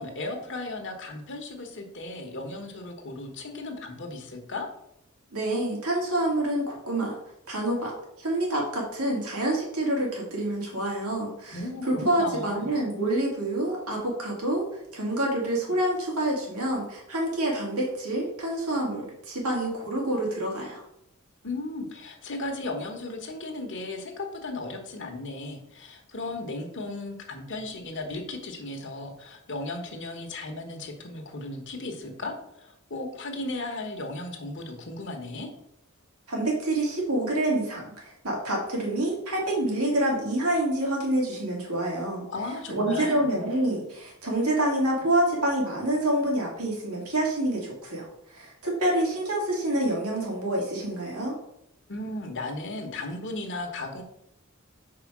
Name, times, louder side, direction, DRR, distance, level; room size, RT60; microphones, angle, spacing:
voice 1, 0.0-4.7 11.5-12.7 21.4-35.5 42.3-43.2 51.9-54.0, left 2 dB, 55° left, 3 dB, 1.2 m, -36 dB
voice 2, 5.3-7.2 7.5-7.9 8.2-14.6 14.9-20.8 36.3-42.2 42.7-51.4, right 1 dB, 85° right, -2 dB, 2.6 m, -27 dB
4.9 x 4.8 x 6.1 m, 0.77 s
head